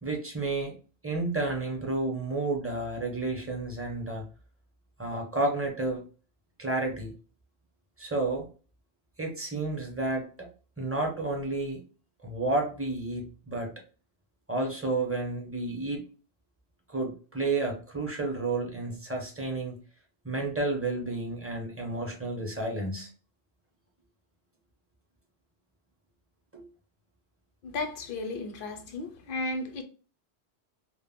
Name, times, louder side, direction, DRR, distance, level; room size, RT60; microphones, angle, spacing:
voice 1, 0.0-0.8 1.0-4.2 5.0-6.0 6.6-7.1 8.0-8.5 9.2-10.5 10.8-11.8 12.2-13.7 14.5-16.0 16.9-19.8 20.2-23.1 26.5-26.6, right 2 dB, 15° right, 0.5 m, -31 dB
voice 2, 27.6-29.8, left 2 dB, 60° left, 0.6 m, -34 dB
2.1 x 2.0 x 3.4 m
omnidirectional pair, 1.1 m